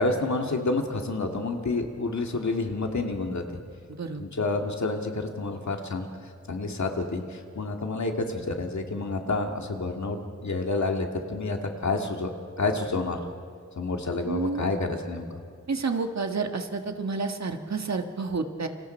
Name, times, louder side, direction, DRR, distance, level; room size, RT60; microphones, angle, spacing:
voice 1, 0.0-3.6 4.2-6.1 6.5-12.3 12.6-13.2 13.8-15.4, left 3 dB, 75° left, 3 dB, 2.2 m, -29 dB
voice 2, 3.9-4.2 14.2-14.6 15.7-18.7, right 4 dB, 65° right, 6 dB, 1.6 m, -30 dB
29.0 x 25.5 x 4.5 m, 2.2 s
wide cardioid pair, 95°, 29 cm